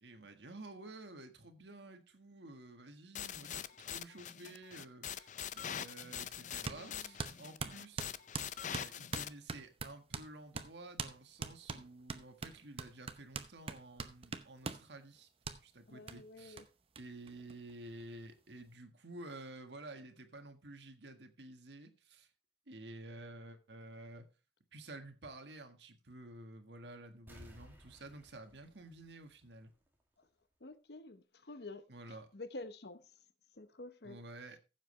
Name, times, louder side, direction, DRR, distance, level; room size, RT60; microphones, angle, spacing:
voice 1, 0.0-8.1 8.7-15.3 15.6-16.6 17.0-22.3 22.7-24.3 24.7-29.7 31.9-32.3 34.0-34.6, right 2 dB, 75° right, 1.6 m, -51 dB
sound 1, 3.2-9.3, left 9 dB, 45° left, 0.5 m, -43 dB
sound 2, 6.6-6.8 7.2-10.3 10.5-10.7 11.0-11.1 11.4-14.9 15.4-15.6 16.1-16.2 16.6-16.7 16.9-17.0 17.3-18.0, right 4 dB, 30° right, 0.8 m, -42 dB
voice 2, 6.7-7.1 15.9-16.6 30.6-31.8 32.1-33.0 33.6-34.2, left 2 dB, 60° left, 0.9 m, -49 dB
sound 3, 27.3-29.9 30.2-30.3, equal, 10° right, 2.3 m, -58 dB
15.0 x 7.4 x 3.2 m
head